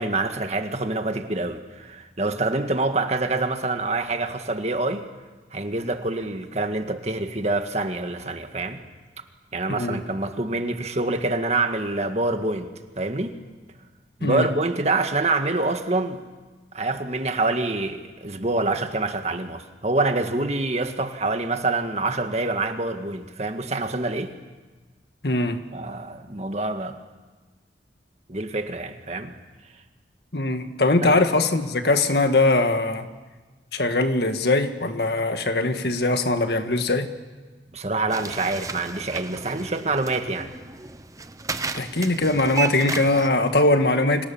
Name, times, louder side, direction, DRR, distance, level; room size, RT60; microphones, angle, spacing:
voice 1, 0.0-5.0 5.5-8.8 9.5-12.7 13.0-13.4 14.2-16.2 16.7-24.3 25.7-27.0 28.3-29.3 31.0-31.2 37.7-40.5, right 2 dB, 40° right, 1.8 m, -26 dB
voice 2, 9.7-10.0 14.2-14.5 25.2-25.6 30.3-33.1 33.7-37.1 41.7-44.3, left 2 dB, 65° left, 1.7 m, -21 dB
sound 1, 38.1-43.3, right 4 dB, 20° right, 0.9 m, -33 dB
29.0 x 26.0 x 7.2 m
head